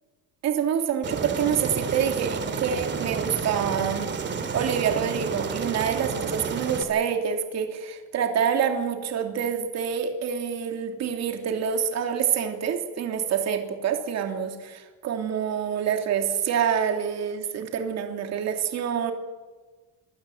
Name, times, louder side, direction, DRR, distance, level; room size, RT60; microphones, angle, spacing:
voice 1, 0.4-4.1 4.5-19.1, right 7 dB, 55° right, 4 dB, 3.1 m, -27 dB
Aircraft, 1.0-6.8, right 5 dB, 35° right, 2.7 m, -30 dB
25.0 x 16.5 x 8.0 m, 1.3 s
cardioid pair, 140°, 31 cm